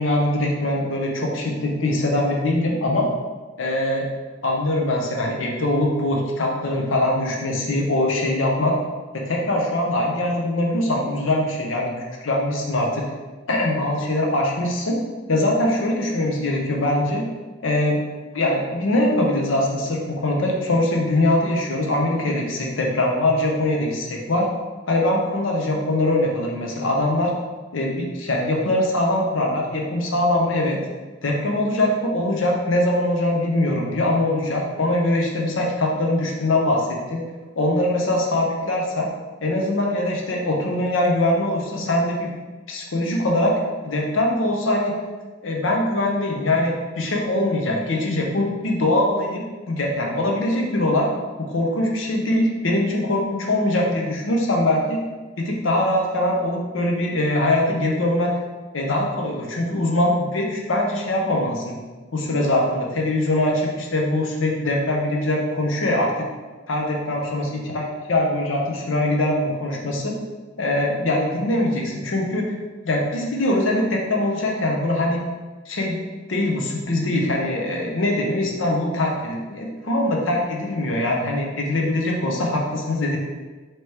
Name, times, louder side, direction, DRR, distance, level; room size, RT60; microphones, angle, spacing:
voice 1, 0.0-3.1 3.6-4.1 4.4-8.8 9.1-13.1 13.5-15.0 15.3-17.3 17.6-18.0 18.3-24.5 24.9-27.3 27.7-30.8 31.2-37.3 37.6-39.1 39.4-42.3 42.7-45.0 45.4-51.1 51.4-55.0 55.4-58.3 58.7-61.8 62.1-66.3 66.7-70.2 70.6-72.5 72.8-75.2 75.7-76.0 76.3-83.2, left 1 dB, 90° left, 0 dB, 0.7 m, -22 dB
3.3 x 3.0 x 4.5 m, 1.3 s
head